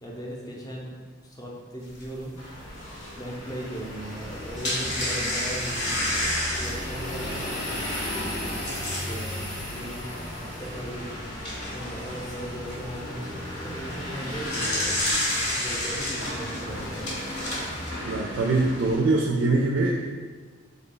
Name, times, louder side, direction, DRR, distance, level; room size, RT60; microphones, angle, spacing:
voice 1, 0.0-0.9 1.2-2.4 3.2-5.8 6.6-8.0 8.6-15.2 15.5-17.1, equal, 20° left, -2 dB, 0.6 m, -38 dB
sound 1, 2.0-2.1 2.6-2.7 4.2-9.2 9.8-9.9 10.3-10.4 11.1-11.9 14.1-17.9, left 1 dB, 60° left, 0.9 m, -29 dB
sound 2, 2.4-19.0, left 1 dB, 85° left, 0.9 m, -35 dB
voice 2, 18.0-20.1, right 2 dB, 75° right, -1 dB, 0.3 m, -23 dB
3.6 x 2.3 x 3.8 m, 1.5 s
head